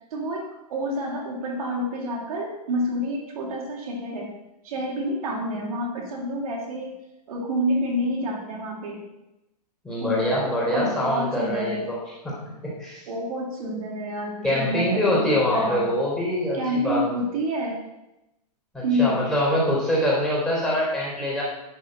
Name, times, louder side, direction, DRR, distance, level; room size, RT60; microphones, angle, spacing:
voice 1, 0.1-4.3 4.6-7.0 7.3-9.0 10.0-10.4 10.7-11.8 13.1-15.9 16.5-17.8 18.8-19.2, equal, 60° right, -1 dB, 3.0 m, -28 dB
voice 2, 9.8-12.0 12.2-13.1 14.4-17.2 18.7-21.4, left 1 dB, 5° left, -6 dB, 3.8 m, -24 dB
10.5 x 6.6 x 6.6 m, 0.91 s
hypercardioid pair, 160°, 21 cm